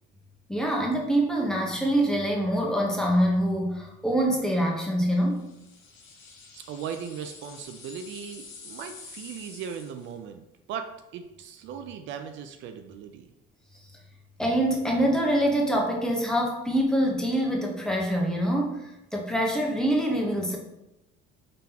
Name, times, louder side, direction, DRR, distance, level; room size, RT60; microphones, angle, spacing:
voice 1, 0.5-5.5 14.4-20.6, right 1 dB, 5° left, -1 dB, 0.9 m, -25 dB
sound 1, 5.3-10.2, left 4 dB, 70° left, 1.0 m, -47 dB
voice 2, 6.5-13.3, right 7 dB, 65° right, 7 dB, 0.4 m, -38 dB
3.8 x 3.7 x 2.8 m, 0.92 s
cardioid pair, 110°, 21 cm